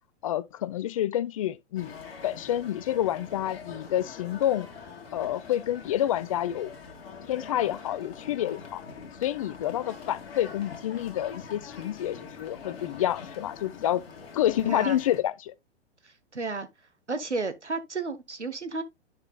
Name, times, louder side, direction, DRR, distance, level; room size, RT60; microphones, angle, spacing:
voice 1, 0.2-4.7 5.1-6.7 7.3-8.8 9.2-14.0 14.3-15.5, left 12 dB, 30° left, 0.4 m, -28 dB
sound 1, 1.8-15.2, left 5 dB, 60° left, 1.7 m, -44 dB
voice 2, 14.6-15.0 16.0-16.7 17.1-18.8, right 3 dB, 85° right, 1.1 m, -32 dB
10.5 x 5.8 x 2.3 m
figure-of-eight pair, 105°, 34 cm